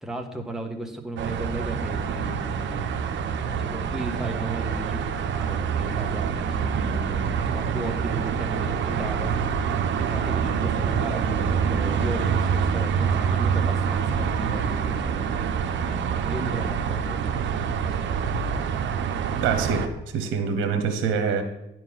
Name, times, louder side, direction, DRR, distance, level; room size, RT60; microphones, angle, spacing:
voice 1, 0.0-2.9 3.4-5.1 5.3-9.3 9.9-15.4 15.8-17.2 17.8-18.3, right 1 dB, ahead, 1.5 m, -35 dB
sound 1, 1.2-19.9, right 7 dB, 70° right, 0.9 m, -26 dB
voice 2, 19.4-21.4, right 6 dB, 85° right, 1.1 m, -25 dB
10.5 x 4.6 x 7.5 m
cardioid pair, 90°, 20 cm